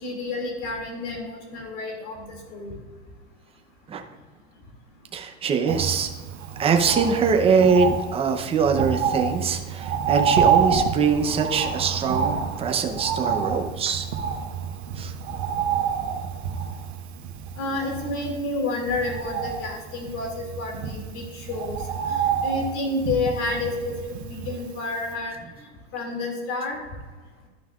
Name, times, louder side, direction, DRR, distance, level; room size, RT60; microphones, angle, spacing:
voice 1, 0.0-2.8 17.6-20.3 20.6-21.8 22.1-25.3 25.9-26.8, left 3 dB, 45° left, 1 dB, 2.5 m, -30 dB
voice 2, 5.1-6.1 6.6-14.1 15.0-15.1, right 5 dB, 15° right, 4 dB, 0.7 m, -23 dB
Bird, 5.7-24.8 25.1-25.2, right 7 dB, 80° right, 1.2 m, -28 dB
12.5 x 5.7 x 2.4 m, 1.4 s
supercardioid pair, 140°, 33 cm